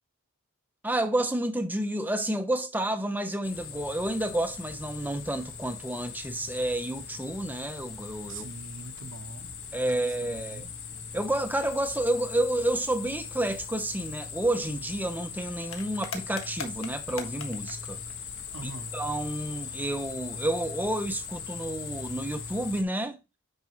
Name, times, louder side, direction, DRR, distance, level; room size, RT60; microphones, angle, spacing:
voice 1, 0.8-8.5 9.7-10.7 11.1-18.0 18.6-23.2, right 1 dB, 10° right, 0.8 m, -30 dB
sound 1, 3.4-22.8, left 6 dB, 65° left, 1.5 m, -40 dB
voice 2, 8.3-9.5 9.8-10.7 18.5-18.9, right 4 dB, 60° right, 1.0 m, -43 dB
9.4 x 5.3 x 3.1 m
head